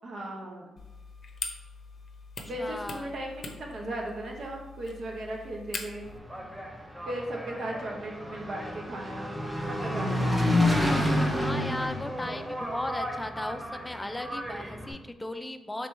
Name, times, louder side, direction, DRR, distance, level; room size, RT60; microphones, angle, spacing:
voice 1, 0.0-0.8 2.5-6.1 7.0-10.5, right 1 dB, 65° right, 0 dB, 0.9 m, -37 dB
sound 1, 0.8-6.2, left 4 dB, 55° left, 0.6 m, -42 dB
voice 2, 2.6-3.1 11.4-15.9, left 1 dB, 15° left, 8 dB, 0.4 m, -36 dB
Engine, 6.1-14.9, left 1 dB, 10° right, 0.8 m, -30 dB
3.4 x 2.9 x 4.6 m, 1.1 s
cardioid pair, 70°, 0 cm